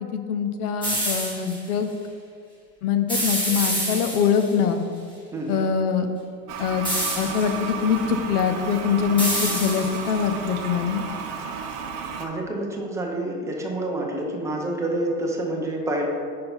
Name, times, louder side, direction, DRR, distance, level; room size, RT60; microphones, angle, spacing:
voice 1, 0.1-1.9 2.8-4.8 5.5-6.1 6.6-6.9 7.2-11.0, left 7 dB, 70° left, 8 dB, 0.8 m, -23 dB
sound 1, 0.8-1.6 3.1-4.5 6.8-7.6 9.2-10.2, right 1 dB, 10° left, 1.5 m, -27 dB
voice 2, 5.3-5.7 11.4-11.6 12.2-16.1, right 1 dB, 5° right, -1 dB, 0.5 m, -28 dB
Toilet flush, 6.5-12.3, right 5 dB, 40° right, 0.7 m, -33 dB
5.3 x 4.4 x 5.4 m, 2.2 s
supercardioid pair, 135°, 46 cm